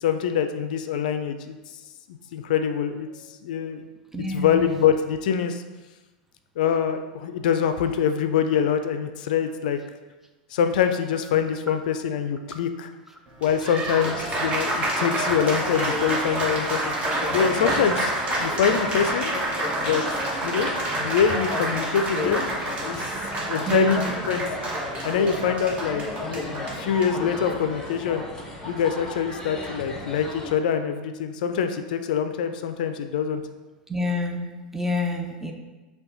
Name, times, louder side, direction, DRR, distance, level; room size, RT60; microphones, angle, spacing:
voice 1, 0.0-1.6 2.1-3.8 4.3-5.6 6.6-9.8 10.5-12.9 13.4-16.9 17.3-18.1 18.4-19.3 19.8-20.0 20.4-22.5 22.8-23.1 23.5-24.4 25.0-28.2 28.6-33.4, left 7 dB, 70° left, 8 dB, 0.3 m, -24 dB
voice 2, 4.1-4.6 23.7-24.0 33.9-35.5, left 1 dB, 5° right, 3 dB, 0.5 m, -27 dB
Applause, 13.3-28.0, right 1 dB, 25° right, 1.0 m, -28 dB
sound 1, 14.0-30.5, left 2 dB, 10° left, 0.8 m, -35 dB
5.3 x 2.2 x 3.9 m, 1.2 s
hypercardioid pair, 100°, 5 cm